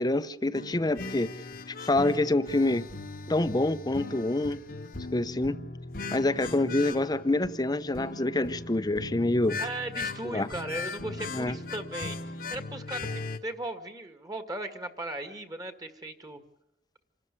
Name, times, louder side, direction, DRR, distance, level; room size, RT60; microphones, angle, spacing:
voice 1, 0.0-1.3 1.9-2.8 3.3-4.6 5.1-5.6 6.1-9.6 10.3-10.5 11.3-11.5, left 2 dB, 25° left, 0.8 m, -26 dB
sound 1, 0.5-13.4, left 3 dB, 55° left, 1.2 m, -38 dB
voice 2, 9.6-12.2 12.5-16.4, right 2 dB, 20° right, 1.9 m, -37 dB
27.0 x 13.0 x 9.8 m
head